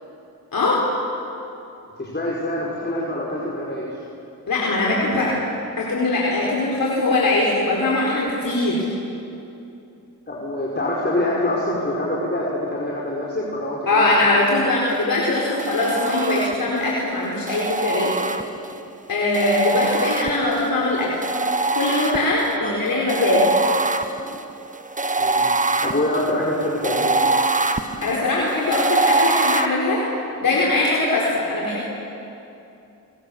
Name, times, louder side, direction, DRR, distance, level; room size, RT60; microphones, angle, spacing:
voice 1, 0.5-0.8 4.5-5.4 5.8-8.9 13.9-18.1 19.1-21.1 21.7-23.5 28.0-30.1 30.4-31.8, left 2 dB, 65° left, -4 dB, 4.7 m, -21 dB
voice 2, 2.0-3.9 10.3-14.3 22.6-22.7 25.2-25.5 25.8-27.2, left 1 dB, 30° left, -5 dB, 5.3 m, -25 dB
sound 1, 15.6-16.9 17.5-18.8 19.3-20.7 21.2-22.5 23.1-29.7, right 3 dB, 20° right, 1.3 m, -23 dB
29.0 x 22.5 x 7.1 m, 2.8 s
cardioid pair, 60°, 37 cm